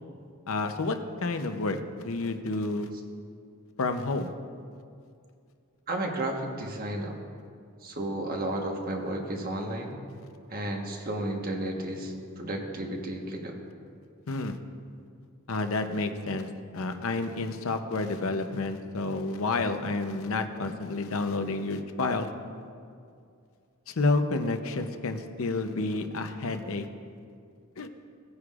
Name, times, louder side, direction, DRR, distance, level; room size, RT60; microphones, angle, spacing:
voice 1, 0.5-2.9 3.8-4.3 14.3-14.6 15.5-22.3 23.9-26.9 27.8-27.9, left 3 dB, 65° left, 7 dB, 0.7 m, -30 dB
voice 2, 5.9-7.1 7.8-10.0 10.5-13.6, right 1 dB, 45° right, 1 dB, 1.3 m, -33 dB
18.5 x 9.6 x 2.5 m, 2.3 s
head